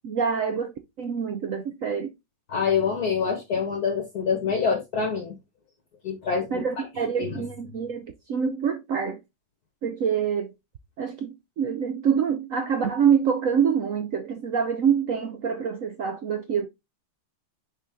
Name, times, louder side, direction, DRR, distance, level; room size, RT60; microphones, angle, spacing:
voice 1, 0.0-2.1 6.5-9.2 9.8-10.5 11.0-16.7, right 7 dB, 90° right, 0.7 m, -26 dB
voice 2, 2.5-5.3 6.0-6.9 7.2-7.4, left 6 dB, 50° left, 1.8 m, -26 dB
6.4 x 4.2 x 3.5 m
omnidirectional pair, 2.3 m